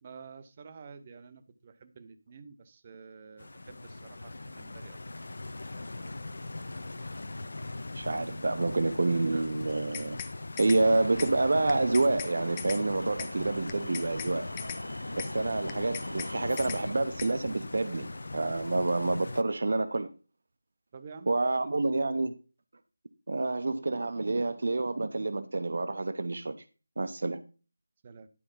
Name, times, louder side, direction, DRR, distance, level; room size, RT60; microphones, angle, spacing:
voice 1, 0.0-5.0 20.9-21.3 21.6-21.7 28.0-28.3, right 5 dB, 30° right, 0.9 m, -49 dB
Stream, 3.4-19.4, left 2 dB, 60° left, 0.8 m, -41 dB
voice 2, 7.9-10.2 10.6-14.5 15.1-20.1 21.3-22.3 23.3-26.5 27.0-27.4, right 2 dB, 55° right, 0.8 m, -28 dB
sound 1, 9.7-10.3 10.6-10.8 11.2-11.3 11.7-12.3 12.6-12.8 13.2-13.3 13.7-14.3 14.6-14.8 15.2-15.3 15.7-16.3 16.6-16.8 17.2-17.3, left 9 dB, 15° left, 0.6 m, -39 dB
sound 2, 10.8-17.0, left 1 dB, 85° left, 0.6 m, -41 dB
11.0 x 4.6 x 5.4 m
figure-of-eight pair, 160°, 0 cm